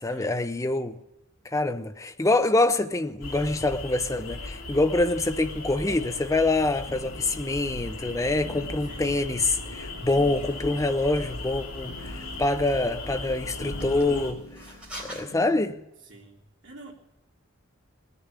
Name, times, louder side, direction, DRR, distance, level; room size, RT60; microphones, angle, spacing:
voice 1, 0.0-1.0 1.4-14.4 15.0-15.8, left 2 dB, 15° left, 0.6 m, -25 dB
sound 1, 3.2-14.3, left 2 dB, 90° left, 2.9 m, -38 dB
sound 2, 6.9-15.8, left 1 dB, 50° left, 2.6 m, -47 dB
voice 2, 8.8-9.2 16.0-16.9, right 2 dB, 60° right, 3.3 m, -47 dB
sound 3, 10.2-15.2, right 1 dB, 5° right, 3.9 m, -47 dB
19.5 x 6.9 x 9.4 m
head